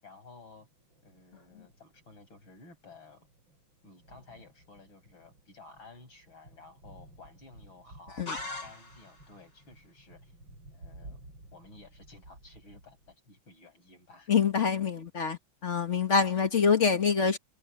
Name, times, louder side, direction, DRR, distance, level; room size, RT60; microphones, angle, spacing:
voice 1, 0.0-0.7 1.0-3.3 3.8-10.3 10.7-11.2 11.5-14.3, left 3 dB, 80° left, 7.7 m, -54 dB
Thunder, 0.6-13.2, right 1 dB, 70° right, 8.9 m, -55 dB
sound 1, 8.3-9.3, left 3 dB, 65° left, 7.7 m, -39 dB
voice 2, 14.3-17.4, left 6 dB, 40° left, 1.7 m, -26 dB
omnidirectional pair, 2.1 m